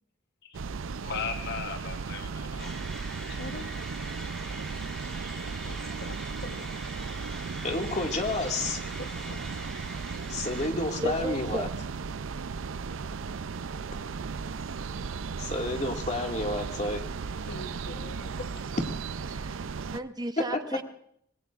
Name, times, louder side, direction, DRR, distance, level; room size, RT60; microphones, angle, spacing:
sound 1, 0.5-20.0, right 5 dB, 75° right, 0.5 m, -36 dB
voice 1, 1.0-2.7 3.3-3.7 5.6-6.7 7.1-7.5 9.0-9.6 17.5-18.3, left 5 dB, 55° left, 7 dB, 1.1 m, -40 dB
sound 2, 2.6-11.1, equal, ahead, 2.0 m, -44 dB
voice 2, 7.6-8.8 10.3-11.7 15.4-17.0, left 2 dB, 35° left, 2 dB, 2.1 m, -30 dB
voice 3, 11.0-11.7 19.3-19.6 19.9-20.8, right 1 dB, 20° right, 9 dB, 0.6 m, -34 dB
25.5 x 20.0 x 2.5 m, 0.66 s
head